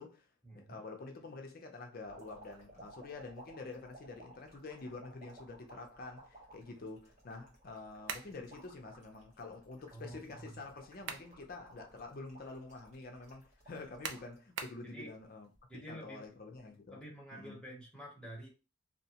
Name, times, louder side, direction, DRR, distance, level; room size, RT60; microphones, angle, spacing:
voice 1, 0.5-17.0 17.3-17.6, left 3 dB, 45° left, 0.5 m, -48 dB
sound 1, 2.0-14.4 14.9-15.6 16.6-16.8, right 1 dB, 35° right, 0.9 m, -57 dB
sound 2, 8.1-8.4 10.7-11.4 11.8-11.9 14.0-14.9, right 6 dB, 55° right, 0.4 m, -42 dB
voice 2, 9.9-10.6 14.8-15.1 15.7-16.2 16.9-18.5, right 1 dB, 5° left, 0.9 m, -49 dB
2.7 x 2.2 x 2.8 m
head